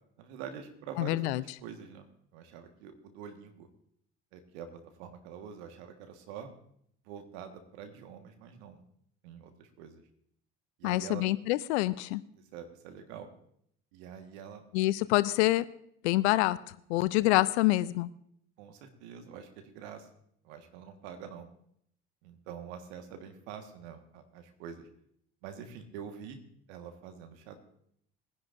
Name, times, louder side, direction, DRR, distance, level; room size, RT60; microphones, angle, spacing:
voice 1, 0.2-2.1 2.3-3.7 4.3-6.5 7.0-8.8 9.2-10.0 10.8-11.2 12.3-13.3 13.9-14.6 18.6-20.1 20.4-21.5 22.2-24.9 25.4-26.4 26.7-27.6, right 7 dB, 75° right, 6 dB, 1.7 m, -46 dB
voice 2, 1.0-1.4 10.8-12.2 14.7-15.6 16.0-16.6 16.9-18.1, left 18 dB, 75° left, 16 dB, 0.6 m, -26 dB
21.0 x 10.5 x 2.6 m, 0.70 s
hypercardioid pair, 60°, 33 cm